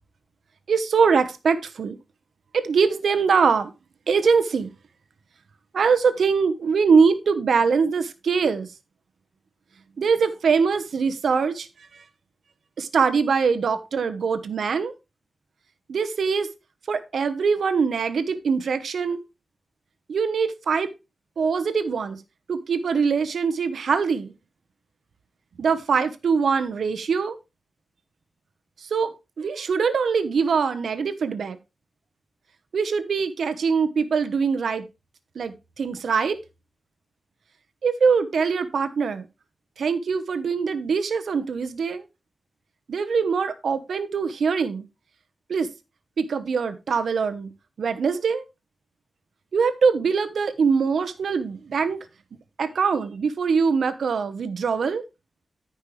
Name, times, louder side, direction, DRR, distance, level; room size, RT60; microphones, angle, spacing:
voice 1, 0.7-2.0 2.5-3.7 4.1-4.7 5.7-8.7 10.0-11.7 12.8-14.9 15.9-16.5 16.9-19.2 20.1-20.9 21.4-22.2 22.5-24.3 25.6-27.4 28.8-29.1 29.4-31.6 32.7-34.8 35.3-36.4 37.8-39.3 39.8-42.0 42.9-44.9 45.5-45.7 46.2-47.5 47.8-48.4 49.5-52.0 52.6-55.0, right 5 dB, 75° right, 1.0 m, -23 dB
14.0 x 5.4 x 3.2 m
wide cardioid pair, 170°, 0 cm